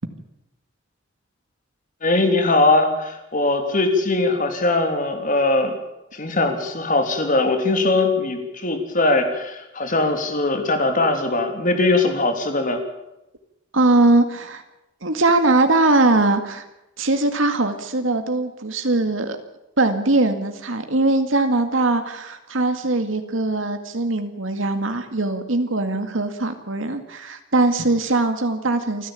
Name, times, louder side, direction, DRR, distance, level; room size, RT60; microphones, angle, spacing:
voice 1, 2.0-5.7 6.1-12.8, left 2 dB, 45° left, 5 dB, 3.3 m, -20 dB
voice 2, 13.7-14.6 15.0-16.6 17.0-19.4 19.8-29.1, right 2 dB, 85° right, 7 dB, 2.1 m, -21 dB
28.5 x 11.0 x 8.7 m, 0.90 s
head